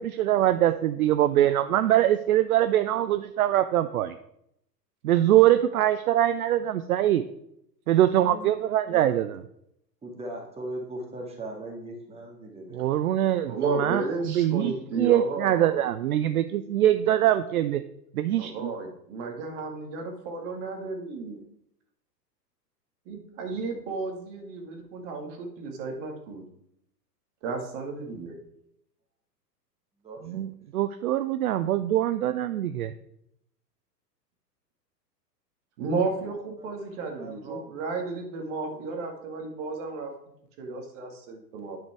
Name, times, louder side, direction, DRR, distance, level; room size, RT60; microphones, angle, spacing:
voice 1, 0.0-4.2 5.0-7.2 7.9-9.3 12.7-17.8 18.2-18.7 30.2-32.9, right 12 dB, 60° right, 12 dB, 0.6 m, -23 dB
voice 2, 10.0-13.5 28.3-28.4 30.0-30.2 36.6-36.7 37.0-37.8 38.7-39.1 41.5-41.6, right 1 dB, 10° right, 0 dB, 1.9 m, -40 dB
voice 3, 13.4-15.8 18.4-21.4 23.1-26.4 27.4-28.3 35.8-40.1 40.6-41.8, right 3 dB, 45° right, 3 dB, 2.0 m, -33 dB
9.5 x 5.1 x 4.7 m, 0.76 s
figure-of-eight pair, 105°, 50 cm